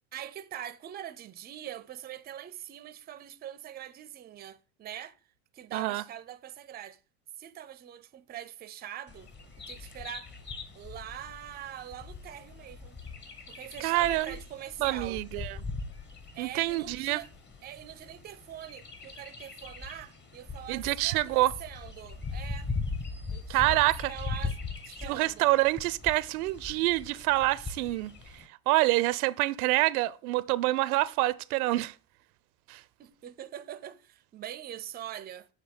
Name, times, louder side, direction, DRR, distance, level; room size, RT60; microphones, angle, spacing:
voice 1, 0.1-5.2 5.5-7.0 7.4-9.3 9.6-10.3 10.7-13.0 13.5-15.2 16.3-17.3 17.6-22.7 23.3-24.6 24.8-25.5 33.0-35.5, right 11 dB, 20° right, 0.5 m, -43 dB
voice 2, 5.7-6.0 13.8-14.3 14.8-15.6 16.4-17.2 20.7-21.5 23.5-24.1 25.0-31.9 32.7-32.8, right 18 dB, 75° right, 0.5 m, -27 dB
Bird vocalization bird call bird song, 9.1-28.5, left 4 dB, 25° left, 1.2 m, -40 dB
7.3 x 3.1 x 5.1 m
hypercardioid pair, 95°, 44 cm